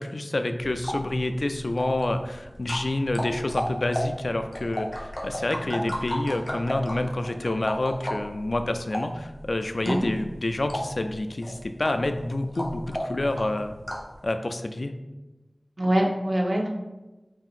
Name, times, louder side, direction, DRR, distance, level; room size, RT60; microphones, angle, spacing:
voice 1, 0.0-13.8 14.2-14.9, left 2 dB, 70° left, 7 dB, 0.3 m, -28 dB
sound 1, 0.6-14.2, equal, 30° left, 0.8 m, -35 dB
voice 2, 15.8-16.7, right 1 dB, 70° right, -1 dB, 0.7 m, -24 dB
5.5 x 2.7 x 2.5 m, 1.1 s
wide cardioid pair, 55°, 0 cm